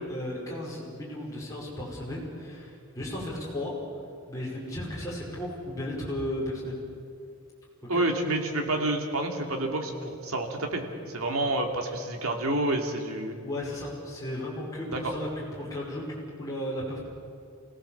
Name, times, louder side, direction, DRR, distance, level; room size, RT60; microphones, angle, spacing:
voice 1, 0.1-3.8 4.3-6.8 7.9-8.0 13.4-17.0, left 1 dB, 15° left, -6 dB, 5.5 m, -35 dB
voice 2, 7.9-10.8 11.1-13.4 14.9-15.0, right 2 dB, 70° right, 2 dB, 3.0 m, -28 dB
29.0 x 17.5 x 7.4 m, 2.4 s
head